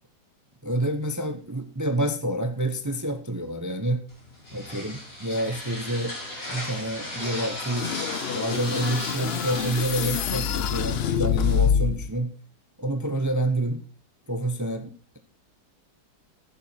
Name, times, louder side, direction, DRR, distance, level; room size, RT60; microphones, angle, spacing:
voice 1, 0.6-4.0 4.5-6.2 6.5-7.9 8.3-12.3 12.8-13.8 14.3-15.2, right 1 dB, 25° right, 8 dB, 0.4 m, -28 dB
sound 1, 4.1-11.6, left 1 dB, 50° left, 5.0 m, -36 dB
sound 2, 7.8-12.1, left 7 dB, 75° left, 0.5 m, -26 dB
11.0 x 10.5 x 4.4 m, 0.38 s
omnidirectional pair, 1.9 m